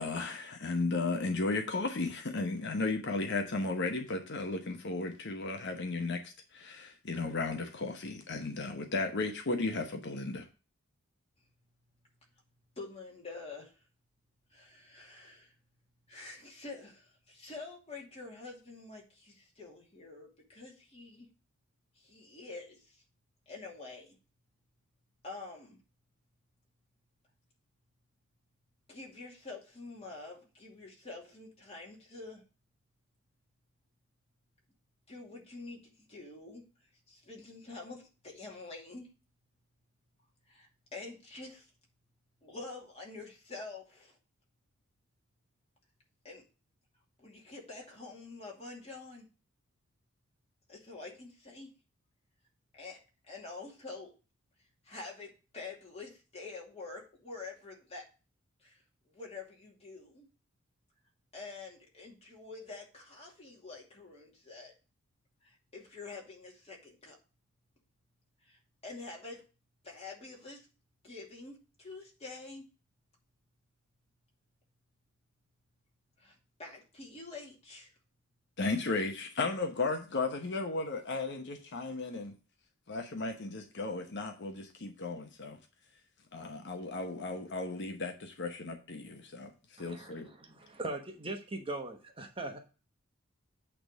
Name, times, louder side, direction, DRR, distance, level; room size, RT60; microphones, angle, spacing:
voice 1, 0.0-10.4 78.6-82.4 82.9-85.6 86.3-89.5 89.8-90.3, left 3 dB, 55° left, 1.0 m, -35 dB
voice 2, 12.8-13.7 14.5-15.5 16.1-21.3 22.0-23.0 23.5-24.2 25.2-25.8 28.9-32.4 35.1-36.6 37.1-39.1 40.5-41.7 42.4-44.2 46.2-46.4 47.2-49.3 50.7-51.7 52.7-53.0 53.3-54.1 54.8-58.0 58.6-58.8 59.1-60.3 61.3-64.7 65.4-67.2 68.4-69.4 69.8-70.7 71.0-72.7 76.2-77.9, left 3 dB, 30° left, 2.5 m, -47 dB
voice 3, 89.8-92.6, right 2 dB, 25° right, 1.1 m, -40 dB
8.7 x 3.5 x 6.4 m
head